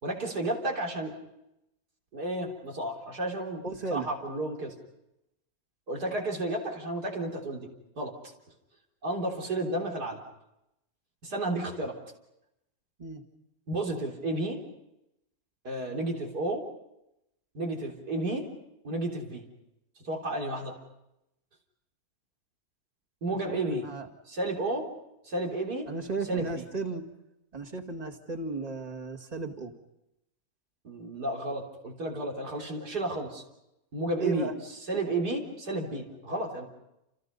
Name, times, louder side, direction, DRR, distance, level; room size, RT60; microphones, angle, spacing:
voice 1, 0.0-1.1 2.1-3.6 3.9-4.7 5.9-7.7 8.0-8.1 9.0-10.2 11.2-12.0 13.7-14.6 15.6-16.6 17.5-18.5 18.8-19.4 20.0-20.7 23.2-23.9 24.3-24.9 25.2-25.9 26.3-26.6 30.8-33.4 33.9-36.7, right 2 dB, 90° right, 0 dB, 4.1 m, -32 dB
voice 2, 3.6-4.1 13.0-13.2 23.3-24.1 25.9-27.0 27.5-29.7 34.1-34.5, right 3 dB, 25° right, 3 dB, 2.1 m, -35 dB
29.5 x 28.5 x 5.5 m, 0.87 s
omnidirectional pair, 1.7 m